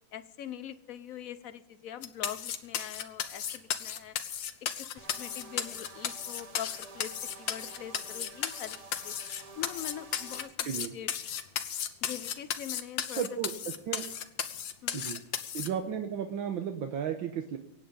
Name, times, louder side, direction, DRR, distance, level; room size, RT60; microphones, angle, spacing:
voice 1, 0.1-4.2 4.8-9.1 9.6-11.1 12.0-13.2 14.8-15.0, left 10 dB, 60° left, 14 dB, 1.0 m, -43 dB
sound 1, 2.0-15.7, left 9 dB, 80° left, 1.7 m, -35 dB
sound 2, 5.0-10.5, right 3 dB, 25° right, 0.8 m, -50 dB
voice 2, 13.2-13.5 13.9-14.0 14.9-15.2 15.5-17.6, right 8 dB, 85° right, 5 dB, 1.8 m, -33 dB
23.5 x 9.1 x 5.4 m, 0.87 s
omnidirectional pair, 2.1 m